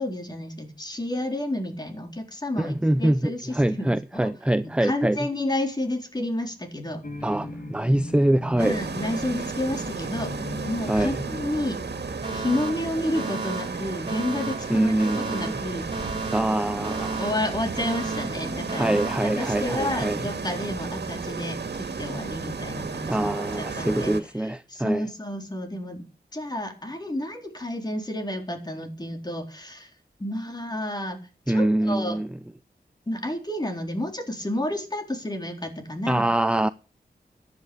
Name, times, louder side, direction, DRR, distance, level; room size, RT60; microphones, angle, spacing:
voice 1, 0.0-4.3 4.8-7.0 8.6-10.3 10.7-11.8 12.3-16.2 17.2-24.1 24.4-29.9 30.2-31.2 31.5-32.2 33.1-36.2, left 1 dB, 25° left, 3.9 m, -31 dB
voice 2, 2.6-5.2 7.2-8.8 10.9-11.2 14.7-15.6 16.3-17.2 18.8-20.2 23.1-25.0 31.5-32.3 36.1-36.7, right 1 dB, 5° right, 0.6 m, -24 dB
sound 1, 7.0-20.6, left 1 dB, 55° left, 3.8 m, -41 dB
sound 2, 8.6-24.2, right 5 dB, 85° right, 1.9 m, -33 dB
Alarm, 12.2-20.2, right 3 dB, 30° right, 4.0 m, -35 dB
15.0 x 10.5 x 5.3 m
wide cardioid pair, 80°, 17 cm